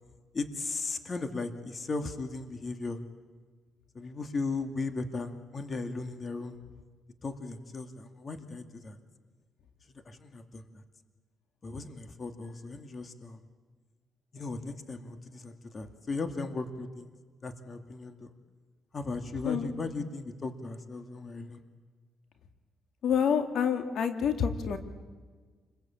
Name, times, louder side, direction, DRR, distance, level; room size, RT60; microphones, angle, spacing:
voice 1, 0.3-3.0 3.9-6.6 7.2-9.0 10.1-10.8 11.6-13.4 14.3-17.1 17.4-18.3 18.9-21.6, left 3 dB, 35° left, 7 dB, 2.3 m, -37 dB
voice 2, 23.0-24.8, left 7 dB, 70° left, 6 dB, 2.5 m, -27 dB
29.0 x 22.0 x 8.8 m, 1.5 s
cardioid pair, 90°, 0 cm